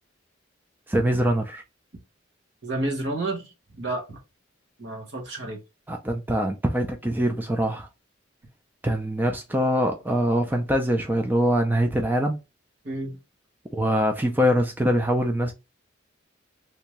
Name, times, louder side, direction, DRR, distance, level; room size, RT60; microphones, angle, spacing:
voice 1, 0.9-1.6 5.9-7.9 8.8-12.4 13.7-15.5, equal, 10° right, 0.4 m, -23 dB
voice 2, 2.6-3.5 3.8-4.2 4.8-5.6 12.8-13.2, right 2 dB, 65° right, 1.3 m, -30 dB
3.4 x 2.7 x 3.0 m
head